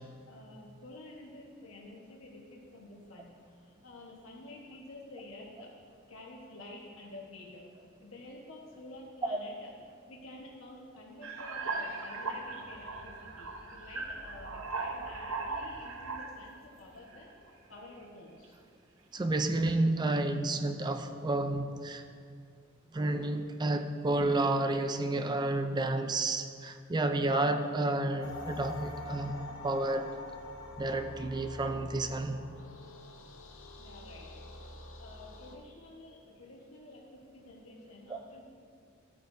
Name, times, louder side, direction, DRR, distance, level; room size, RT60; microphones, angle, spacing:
voice 1, 0.3-5.7 6.1-9.7 10.1-17.3 17.7-18.6 33.8-34.5 35.0-38.4, left 2 dB, 85° left, -2 dB, 1.3 m, -50 dB
sound 1, 11.2-16.5 17.1-17.5, right 3 dB, 75° right, 0.8 m, -38 dB
voice 2, 19.1-22.0 22.9-30.1 30.8-32.4, right 2 dB, 20° right, 7 dB, 0.4 m, -30 dB
sound 2, 28.2-35.5, left 2 dB, 70° left, 0.9 m, -46 dB
13.5 x 8.5 x 2.7 m, 2.2 s
head